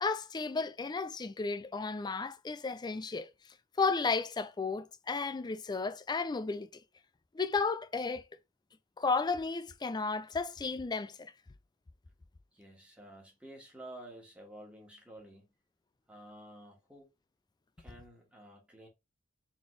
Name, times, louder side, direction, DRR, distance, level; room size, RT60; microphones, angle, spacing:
voice 1, 0.0-3.3 3.8-6.7 7.3-8.2 9.0-11.3, left 4 dB, 20° left, 0.3 m, -33 dB
voice 2, 12.5-15.5 16.1-17.1 17.8-18.9, right 1 dB, 5° right, 1.4 m, -51 dB
4.1 x 3.4 x 3.1 m
head